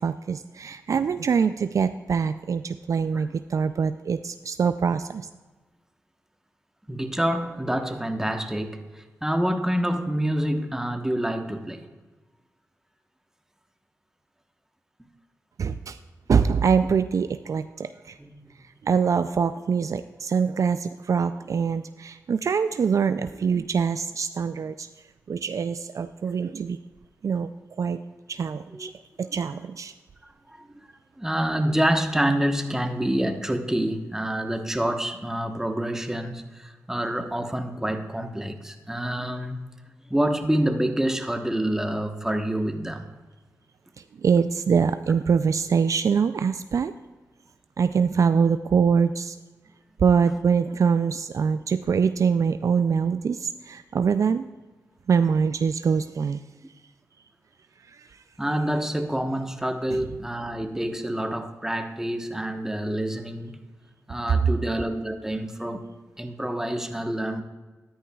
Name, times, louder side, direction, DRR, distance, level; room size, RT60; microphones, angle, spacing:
voice 1, 0.0-5.3 15.6-16.0 16.3-18.2 18.8-24.9 25.3-26.8 27.2-28.0 28.3-28.9 29.2-29.9 44.2-46.9 47.8-49.4 50.0-54.5 55.1-56.4 57.9-58.1 59.9-60.0, right 6 dB, 60° right, 0.3 m, -24 dB
voice 2, 6.9-11.9 18.2-18.3 28.7-28.9 30.2-30.9 31.2-39.6 40.1-43.1 58.4-63.6 64.1-65.9 66.2-67.4, right 1 dB, 10° right, 1.1 m, -27 dB
13.5 x 10.0 x 2.3 m
cardioid pair, 50°, 6 cm